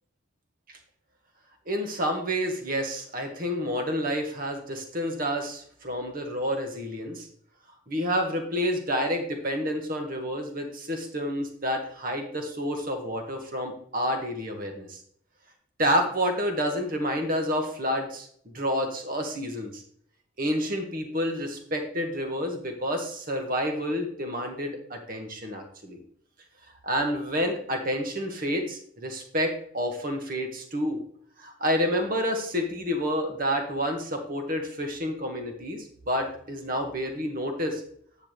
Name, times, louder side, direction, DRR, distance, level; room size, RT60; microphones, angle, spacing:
voice 1, 1.7-7.3 7.9-15.0 15.8-19.8 20.4-26.0 26.8-31.0 31.4-37.8, equal, 45° right, 4 dB, 1.6 m, -29 dB
9.8 x 7.2 x 3.2 m, 0.63 s
head